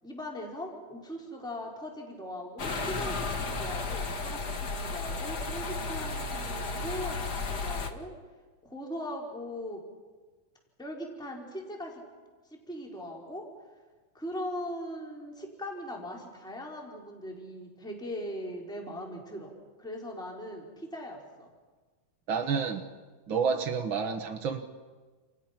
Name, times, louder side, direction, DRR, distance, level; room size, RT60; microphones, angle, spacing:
voice 1, 0.0-8.1 8.6-9.8 10.8-12.0 12.7-13.4 14.1-19.5 19.8-21.5, equal, ahead, -1 dB, 4.2 m, -40 dB
sound 1, 2.6-7.9, left 3 dB, 40° left, 1.4 m, -33 dB
voice 2, 22.3-22.8 23.3-24.6, right 6 dB, 65° right, 4 dB, 1.2 m, -29 dB
29.5 x 29.0 x 6.0 m, 1.4 s
omnidirectional pair, 4.4 m